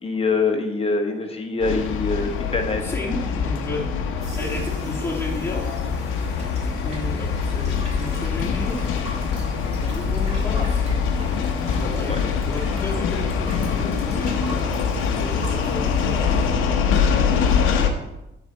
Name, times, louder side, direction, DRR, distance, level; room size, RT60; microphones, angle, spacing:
voice 1, 0.0-2.8 12.1-12.2, left 3 dB, 30° left, 4 dB, 1.1 m, -24 dB
sound 1, 1.6-17.9, left 6 dB, 90° left, 0.8 m, -24 dB
voice 2, 2.8-5.6 6.6-8.8 9.9-10.9 11.8-17.4, left 2 dB, 10° left, -5 dB, 2.1 m, -33 dB
sound 2, 4.2-16.5, equal, 35° right, 2.6 m, -41 dB
9.3 x 4.1 x 4.4 m, 0.93 s
cardioid pair, 90°, 20 cm